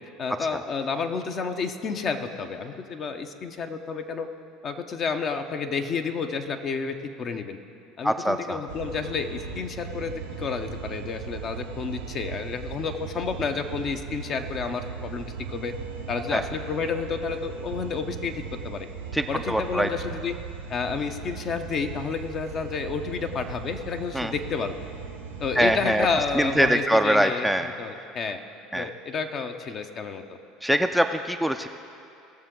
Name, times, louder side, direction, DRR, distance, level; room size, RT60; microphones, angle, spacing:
voice 1, 0.2-4.3 4.6-7.6 8.0-15.7 16.1-18.9 19.3-20.3 20.7-24.8 25.4-28.4 28.7-30.2, left 5 dB, 45° left, 6 dB, 0.9 m, -30 dB
voice 2, 8.0-8.6 16.3-16.4 19.1-19.9 24.1-24.3 25.6-26.1 26.4-27.7 28.7-28.9 30.6-31.7, right 1 dB, ahead, 6 dB, 0.4 m, -23 dB
sound 1, 8.7-26.7, right 6 dB, 90° right, 0.7 m, -38 dB
18.5 x 6.8 x 3.8 m, 2.6 s
hypercardioid pair, 75°, 0 cm